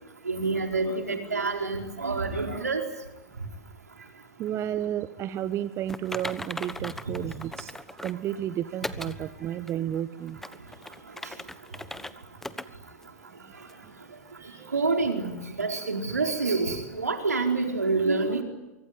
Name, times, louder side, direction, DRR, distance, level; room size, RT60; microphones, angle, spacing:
voice 1, 0.2-2.8 14.4-18.4, right 3 dB, 85° right, 4 dB, 4.5 m, -27 dB
voice 2, 4.4-7.8 8.0-10.4 13.4-14.0 14.3-14.7, right 11 dB, 30° right, 13 dB, 1.2 m, -32 dB
Typing, 5.9-8.2 8.8-9.2 9.7-9.8 10.3-12.1 12.4-12.7 13.0-13.1 13.7-13.8, left 1 dB, 5° left, 1.3 m, -38 dB
24.5 x 24.5 x 9.6 m, 1.0 s
hypercardioid pair, 100°, 8 cm